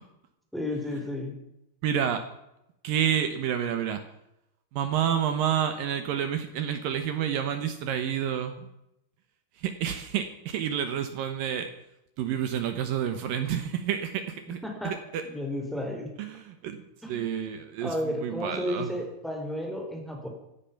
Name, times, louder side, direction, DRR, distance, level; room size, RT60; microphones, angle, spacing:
voice 1, 0.5-1.3 14.6-14.9 15.2-16.1 17.0-17.2 17.8-20.3, left 1 dB, ahead, 1 dB, 2.9 m, -32 dB
voice 2, 1.8-2.2 2.8-4.0 4.7-8.7 9.6-11.7 12.2-14.6 14.8-15.2 16.2-16.8 17.1-18.9, right 9 dB, 80° right, 8 dB, 2.0 m, -29 dB
15.5 x 12.0 x 5.8 m, 0.84 s
omnidirectional pair, 5.5 m